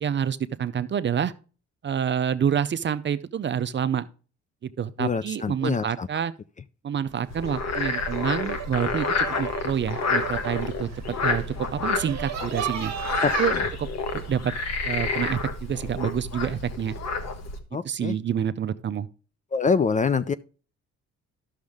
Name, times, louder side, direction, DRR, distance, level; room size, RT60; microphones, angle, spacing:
voice 1, 0.0-1.3 1.8-4.0 4.6-6.3 6.8-10.9 11.2-11.4 11.7-12.9 13.4-13.9 14.3-14.5 14.8-17.0 17.8-19.1, right 8 dB, 40° right, 0.5 m, -27 dB
voice 2, 5.0-6.1 13.2-13.3 17.7-18.2 19.5-20.3, left 5 dB, 25° left, 0.4 m, -25 dB
sound 1, 7.1-13.5, right 10 dB, 60° right, 1.0 m, -36 dB
Frog, 7.3-17.6, left 4 dB, 60° left, 1.4 m, -29 dB
11.5 x 6.4 x 3.5 m
cardioid pair, 90°, 30 cm